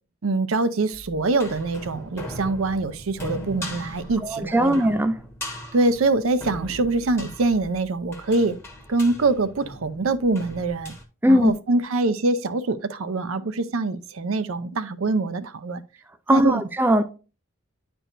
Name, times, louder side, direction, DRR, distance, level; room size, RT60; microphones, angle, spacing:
voice 1, 0.2-4.9 5.7-8.5 8.9-10.9 11.3-15.8 16.3-16.6, right 3 dB, 75° right, 0.6 m, -24 dB
sound 1, 0.9-11.0, equal, 10° left, 1.0 m, -39 dB
voice 2, 4.2-5.1 11.2-11.5 16.3-17.0, equal, 10° right, 0.4 m, -19 dB
10.0 x 4.6 x 2.5 m
head